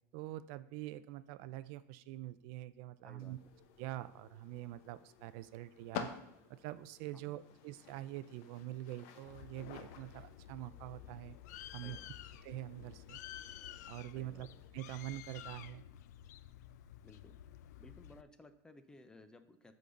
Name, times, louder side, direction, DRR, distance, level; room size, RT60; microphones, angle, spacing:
voice 1, 0.1-3.4 3.8-6.1 6.5-11.4 11.7-12.0 12.4-13.2 13.9-14.5 14.7-15.8, right 15 dB, 55° right, 16 dB, 0.3 m, -45 dB
voice 2, 3.0-3.4 7.1-7.5 11.8-12.1 14.1-14.5 17.0-17.4 17.8-19.7, left 2 dB, 10° left, 10 dB, 0.5 m, -58 dB
sound 1, 3.2-14.7, left 8 dB, 60° left, 0.9 m, -52 dB
Bird, 9.3-18.2, left 11 dB, 85° left, 0.4 m, -52 dB
8.2 x 3.9 x 6.8 m, 0.84 s
supercardioid pair, 145°, 9 cm